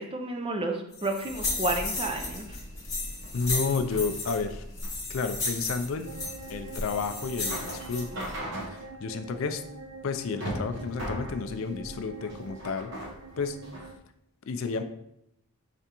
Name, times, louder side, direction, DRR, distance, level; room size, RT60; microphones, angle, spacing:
voice 1, 0.0-2.5, right 2 dB, 25° right, 3 dB, 0.4 m, -31 dB
sound 1, 0.9-8.4, left 2 dB, 15° left, 1.0 m, -34 dB
sound 2, 2.4-13.9, right 1 dB, 55° right, 1.0 m, -40 dB
voice 2, 3.3-4.6 5.1-6.1 6.5-8.1 8.7-9.6 10.0-12.9 13.4-13.6 14.5-14.8, left 4 dB, 65° left, 8 dB, 0.4 m, -31 dB
sound 3, 6.0-14.0, right 3 dB, 80° right, 0.5 m, -45 dB
4.9 x 3.4 x 2.9 m, 0.77 s
head